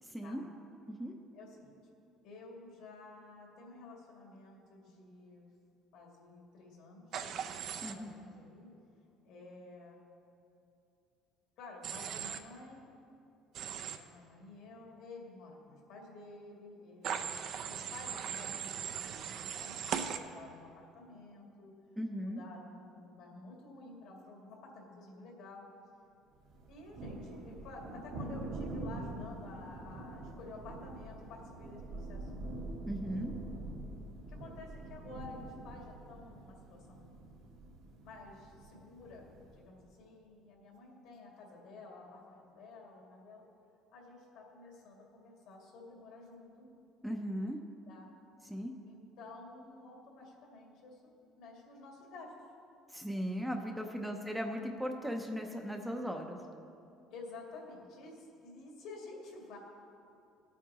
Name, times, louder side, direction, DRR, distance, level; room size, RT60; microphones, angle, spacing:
voice 1, 0.0-0.4 0.9-1.1 7.8-8.1 22.0-22.4 32.9-33.3 47.0-47.6 48.4-48.7 52.9-56.4, equal, 5° right, 2 dB, 0.7 m, -37 dB
voice 2, 1.3-1.8 2.2-5.5 5.9-7.4 7.8-8.7 9.2-10.0 11.6-12.8 14.0-17.4 17.7-21.7 22.2-25.7 26.7-32.6 34.3-37.1 38.0-43.4 43.9-46.7 47.9-48.1 48.8-52.3 53.9-54.2 57.1-59.6, left 3 dB, 70° left, -1 dB, 2.4 m, -51 dB
Human voice / Train, 7.1-7.9 11.8-12.4 13.5-14.0 17.0-20.2, right 8 dB, 55° right, 0.6 m, -39 dB
Thunder, 26.5-39.7, right 2 dB, 70° right, 1.7 m, -45 dB
19.0 x 8.3 x 3.0 m, 2.7 s
cardioid pair, 140°, 0 cm